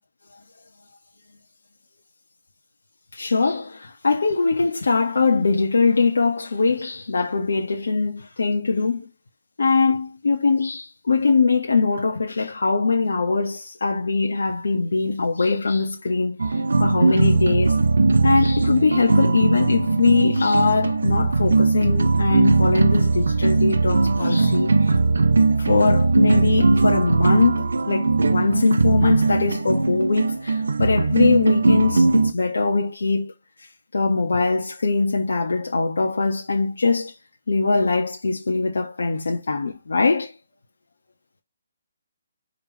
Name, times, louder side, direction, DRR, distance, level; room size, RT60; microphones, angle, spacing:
voice 1, 3.1-9.1 9.6-17.8 18.2-24.9 25.6-33.3 33.9-37.1 37.5-40.3, left 4 dB, 80° left, 1.7 m, -22 dB
sound 1, 16.4-32.3, right 3 dB, 85° right, 0.9 m, -19 dB
5.4 x 4.7 x 4.4 m
hypercardioid pair, 150°, 0 cm